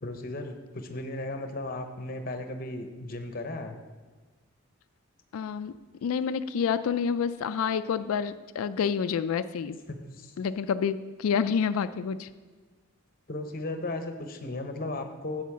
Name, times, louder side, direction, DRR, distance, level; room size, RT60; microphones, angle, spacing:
voice 1, 0.0-3.8 9.9-10.3 13.3-15.4, left 2 dB, 40° left, 6 dB, 0.8 m, -35 dB
voice 2, 5.3-5.7 6.0-9.8 10.4-12.3, left 6 dB, 80° left, 12 dB, 0.3 m, -28 dB
8.3 x 5.0 x 7.4 m, 1.4 s
head